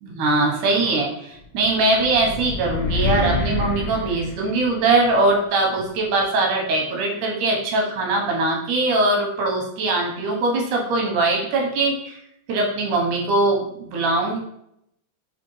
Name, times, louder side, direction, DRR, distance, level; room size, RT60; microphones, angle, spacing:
voice 1, 0.0-12.2 12.5-14.4, right 2 dB, 85° right, 0 dB, 2.4 m, -21 dB
sound 1, 1.6-5.0, left 3 dB, 85° left, 1.2 m, -27 dB
5.6 x 2.4 x 3.0 m, 0.75 s
omnidirectional pair, 3.4 m